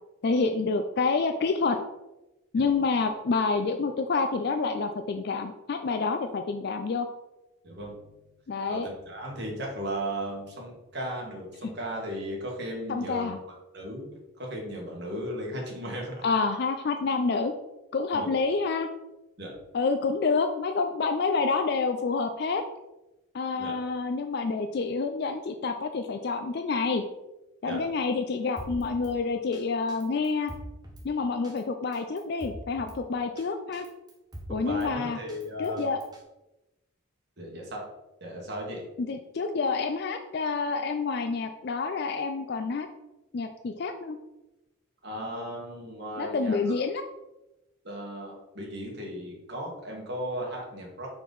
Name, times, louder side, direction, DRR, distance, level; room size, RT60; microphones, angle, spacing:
voice 1, 0.2-1.8 2.5-7.1 8.5-8.9 12.9-13.4 16.2-17.5 17.9-18.9 19.7-22.6 23.3-27.0 27.6-30.5 31.0-33.8 34.5-35.2 35.6-36.0 39.0-42.9 43.3-44.2 46.2-47.0, left 4 dB, 50° left, 6 dB, 0.4 m, -28 dB
voice 2, 7.6-7.9 8.7-13.3 13.7-16.2 18.1-18.3 19.4-19.5 23.6-23.8 27.6-27.8 34.5-35.9 37.4-37.8 38.2-38.8 45.0-46.7 47.8-51.1, equal, 50° right, -1 dB, 1.7 m, -36 dB
Drum kit, 28.6-29.1 29.5-29.6 29.9-31.1 31.4-31.6 31.9-33.0 33.4-33.5 33.7-34.9 35.3-36.2, equal, 20° right, 1.0 m, -43 dB
5.3 x 4.6 x 4.0 m, 0.99 s
head